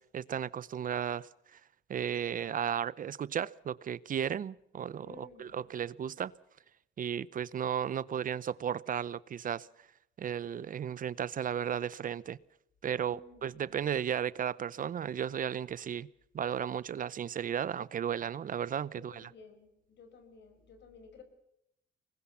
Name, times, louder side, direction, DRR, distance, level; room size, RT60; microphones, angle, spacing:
voice 1, 0.0-1.6 1.9-6.3 7.0-9.7 10.2-12.4 12.8-16.1 16.3-19.3, right 8 dB, 45° right, 0.7 m, -34 dB
voice 2, 5.0-5.7 13.0-13.6 18.9-21.2, left 4 dB, 65° left, 5.4 m, -55 dB
25.0 x 20.0 x 5.7 m
cardioid pair, 105°, 19 cm